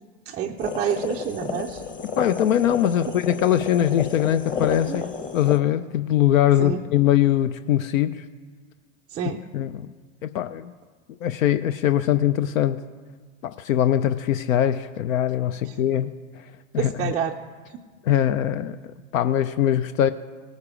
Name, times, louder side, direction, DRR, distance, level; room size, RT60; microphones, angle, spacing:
voice 1, 0.3-1.8 4.9-5.0 6.6-6.8 9.1-9.4 16.8-17.3, right 8 dB, 20° right, -1 dB, 0.3 m, -28 dB
sound 1, 0.6-5.6, left 6 dB, 20° left, 0.9 m, -31 dB
voice 2, 2.2-8.3 9.5-9.9 10.2-10.7 11.2-12.8 13.4-16.4 16.7-17.1 18.0-18.8 19.1-20.1, left 11 dB, 80° left, 12 dB, 0.5 m, -22 dB
18.0 x 6.5 x 4.9 m, 1.5 s
hypercardioid pair, 105°, 39 cm